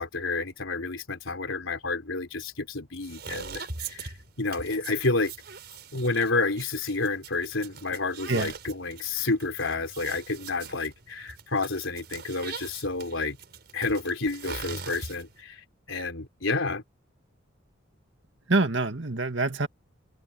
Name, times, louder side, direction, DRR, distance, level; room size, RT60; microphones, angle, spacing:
voice 1, 0.0-5.3 5.9-13.4 13.7-15.6 15.9-16.8, left 3 dB, 90° left, 3.9 m, -30 dB
sound 1, 3.0-15.4, right 5 dB, 55° right, 6.4 m, -42 dB
voice 2, 18.5-19.7, right 2 dB, 70° right, 1.9 m, -25 dB
head